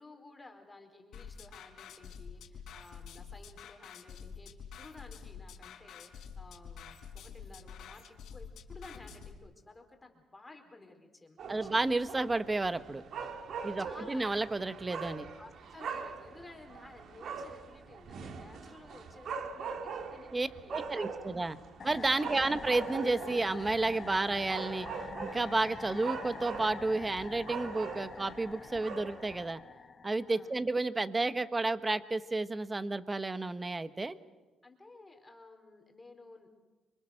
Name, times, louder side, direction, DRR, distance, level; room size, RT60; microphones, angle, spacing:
voice 1, 0.0-4.5 4.8-12.0 13.8-14.3 15.4-21.6 22.0-22.3 30.3-30.6 34.6-36.5, left 2 dB, 20° left, 4 dB, 4.3 m, -54 dB
sound 1, 1.1-9.3, left 6 dB, 75° left, 4.5 m, -48 dB
sound 2, 11.4-29.5, right 5 dB, 65° right, 2.4 m, -42 dB
voice 2, 11.5-13.0 13.6-15.3 20.3-21.6 21.8-24.9 25.2-29.6 30.0-34.1, right 2 dB, 20° right, 12 dB, 1.3 m, -31 dB
sound 3, 21.8-30.6, left 5 dB, 40° left, 1.2 m, -46 dB
29.0 x 25.0 x 6.5 m, 1.2 s
cardioid pair, 90°, 0 cm